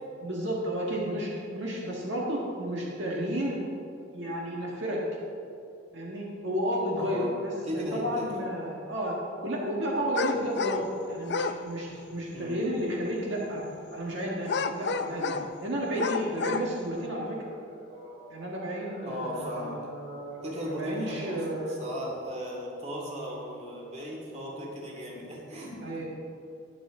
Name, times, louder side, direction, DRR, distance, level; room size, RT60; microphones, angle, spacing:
voice 1, 0.2-3.6 4.1-5.0 5.9-9.1 9.4-13.6 13.9-15.3 15.6-17.4 18.3-21.8 25.8-26.0, equal, 70° right, -3 dB, 1.7 m, -32 dB
voice 2, 7.0-7.3 7.7-8.3 12.3-12.6 15.9-16.0 16.9-17.0 17.3-18.4 18.7-19.8 20.4-26.0, equal, 35° right, -2 dB, 2.5 m, -37 dB
sound 1, 10.2-10.9 11.2-11.6 14.5-15.5 15.9-16.7, left 4 dB, 60° left, 0.6 m, -30 dB
21.0 x 7.1 x 3.8 m, 2.6 s
head